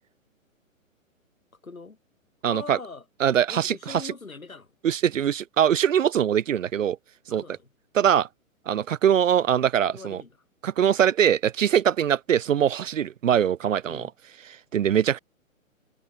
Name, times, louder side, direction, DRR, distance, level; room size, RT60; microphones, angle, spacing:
voice 1, 1.6-2.0 2.4-3.0 3.5-4.7 7.3-7.7 9.9-10.4 13.9-14.1, left 3 dB, 80° left, 5.7 m, -41 dB
voice 2, 2.4-2.8 3.2-4.0 4.8-7.0 7.3-7.4 7.9-8.3 8.7-10.2 10.6-14.1 14.7-15.2, right 9 dB, 65° right, 0.6 m, -22 dB
figure-of-eight pair, 125°, 41 cm